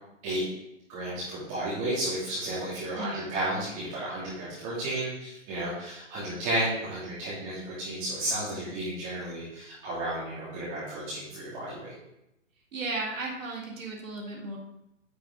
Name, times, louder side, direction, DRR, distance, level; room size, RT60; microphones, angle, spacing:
voice 1, 0.9-11.9, right 1 dB, 25° right, -11 dB, 2.9 m, -33 dB
voice 2, 12.7-14.6, right 2 dB, 85° right, -2 dB, 2.1 m, -35 dB
10.0 x 5.0 x 3.8 m, 0.86 s
hypercardioid pair, 155°, 39 cm